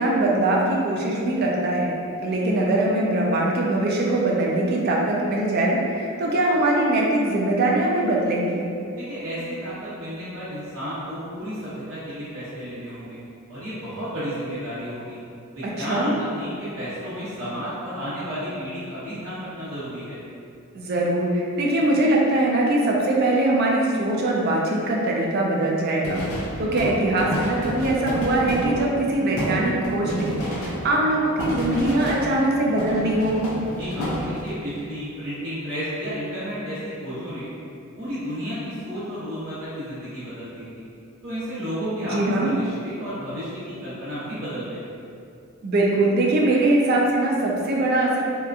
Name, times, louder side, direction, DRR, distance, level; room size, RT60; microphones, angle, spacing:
voice 1, 0.0-1.9 2.2-8.7 15.6-16.1 20.7-26.2 26.6-33.4 42.1-42.5 45.6-48.2, right 1 dB, 45° right, -2 dB, 0.3 m, -22 dB
voice 2, 9.0-13.2 13.5-15.2 15.5-20.2 33.8-37.5 37.9-40.8 41.2-44.9, equal, 90° right, -14 dB, 0.8 m, -32 dB
sound 1, 26.0-32.5 32.8-34.6, equal, 65° left, 0.5 m, -30 dB
2.8 x 2.3 x 2.2 m, 2.5 s
head